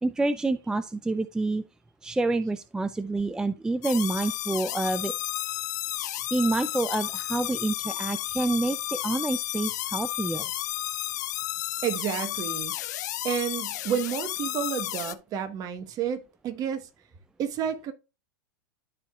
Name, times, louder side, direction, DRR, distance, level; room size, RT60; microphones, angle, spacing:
voice 1, 0.0-1.6 2.0-5.1 6.3-10.5, right 2 dB, 5° right, 0.4 m, -28 dB
sound 1, 3.8-15.1, left 15 dB, 65° left, 0.6 m, -32 dB
voice 2, 11.8-12.7 13.2-16.9 17.4-17.9, right 8 dB, 40° right, 1.3 m, -30 dB
13.0 x 4.7 x 2.4 m
hypercardioid pair, 100°, 10 cm